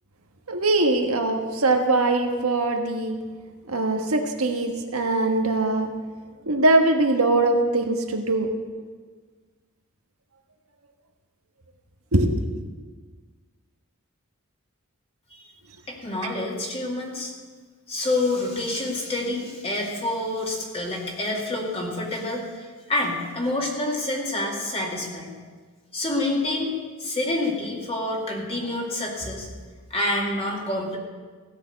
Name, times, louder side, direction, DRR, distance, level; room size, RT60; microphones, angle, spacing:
voice 1, 0.5-3.1 3.7-5.9 6.5-8.5 12.1-12.6, right 2 dB, 75° right, 4 dB, 1.5 m, -22 dB
voice 2, 15.9-17.3 17.9-25.3 25.9-26.7 27.0-29.5 29.9-31.0, left 2 dB, 25° left, -2 dB, 2.2 m, -27 dB
16.0 x 6.4 x 8.1 m, 1.5 s
head